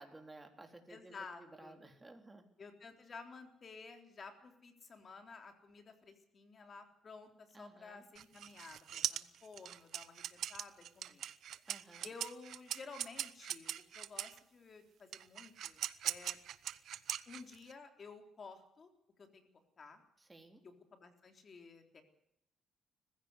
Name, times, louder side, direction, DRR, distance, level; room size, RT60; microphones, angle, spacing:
voice 1, 0.0-2.4 7.5-8.0 11.7-12.1 20.2-20.6, right 2 dB, 15° right, 5 dB, 3.7 m, -56 dB
voice 2, 0.9-1.8 2.6-11.2 12.0-16.4 17.3-18.9 19.2-19.5 19.8-20.0 20.6-22.0, left 4 dB, 45° left, 6 dB, 3.6 m, -53 dB
sound 1, 8.2-14.4 15.1-17.7, right 11 dB, 75° right, 0.8 m, -41 dB
20.5 x 15.5 x 8.3 m, 0.78 s
cardioid pair, 90°, 0 cm